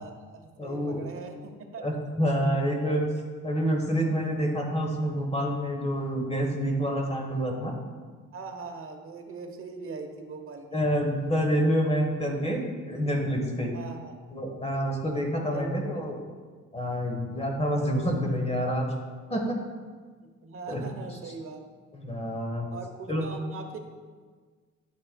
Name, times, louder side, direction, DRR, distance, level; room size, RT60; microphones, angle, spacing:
voice 1, 0.0-1.8 8.3-10.8 13.7-14.1 15.5-16.1 20.4-21.6 22.0-22.1 22.7-23.8, right 4 dB, 45° right, 5 dB, 0.9 m, -41 dB
voice 2, 0.6-1.0 1.8-3.1 3.4-7.7 10.7-13.8 14.3-16.2 16.7-18.9 19.3-19.6 20.7-20.8 21.9-22.7 23.1-23.3, equal, 20° left, 1 dB, 1.2 m, -27 dB
9.9 x 5.3 x 2.2 m, 1.5 s
cardioid pair, 90°, 30 cm